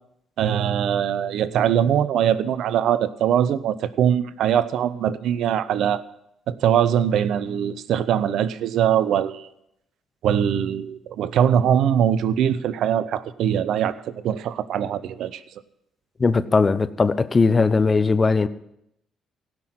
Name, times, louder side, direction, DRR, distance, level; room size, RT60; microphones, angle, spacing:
voice 1, 0.4-6.0 6.5-9.5 10.2-15.4, right 9 dB, 65° right, 0.7 m, -22 dB
voice 2, 16.2-18.5, left 4 dB, 35° left, 0.8 m, -19 dB
16.5 x 6.2 x 7.7 m
hypercardioid pair, 50°, 0 cm